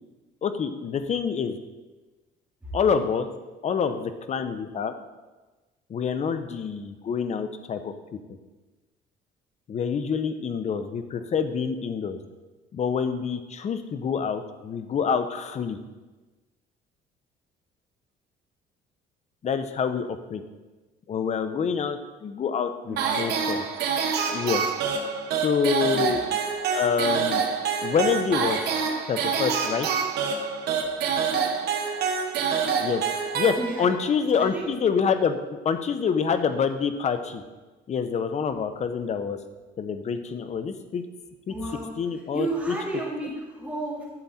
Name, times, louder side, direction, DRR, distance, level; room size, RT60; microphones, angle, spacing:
voice 1, 0.4-1.6 2.7-3.3 3.6-4.9 5.9-7.9 9.7-12.2 12.7-15.8 19.4-20.4 21.1-23.6 24.3-24.6 25.4-26.2 26.7-27.4 27.8-28.8 29.1-29.9 32.8-33.0 33.3-37.4 37.9-39.4 39.8-41.0 41.5-41.6 42.0-42.7, left 6 dB, 40° left, 9 dB, 0.9 m, -26 dB
voice 2, 22.9-23.3 25.9-26.4 33.6-33.9 34.4-34.7 41.5-41.9 42.3-44.1, right 2 dB, 10° right, -6 dB, 4.0 m, -32 dB
sound 1, 23.0-34.1, right 6 dB, 75° right, 1.4 m, -27 dB
12.0 x 7.5 x 4.3 m, 1.2 s
cardioid pair, 110°, 17 cm